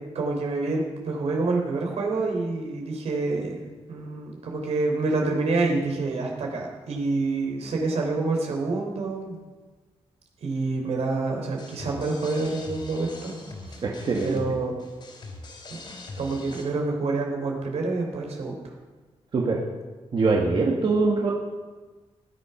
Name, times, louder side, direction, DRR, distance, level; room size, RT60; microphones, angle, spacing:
voice 1, 0.1-3.6 3.9-9.4 10.4-13.3 13.7-13.8 14.2-14.7 16.2-18.6, right 3 dB, 80° right, 1 dB, 3.5 m, -27 dB
sound 1, 11.6-16.6, left 2 dB, 45° left, 3.3 m, -42 dB
voice 2, 13.8-14.4 19.3-19.6 20.1-21.3, right 3 dB, 45° right, -1 dB, 1.6 m, -23 dB
17.5 x 10.5 x 5.7 m, 1.3 s
wide cardioid pair, 170°, 11 cm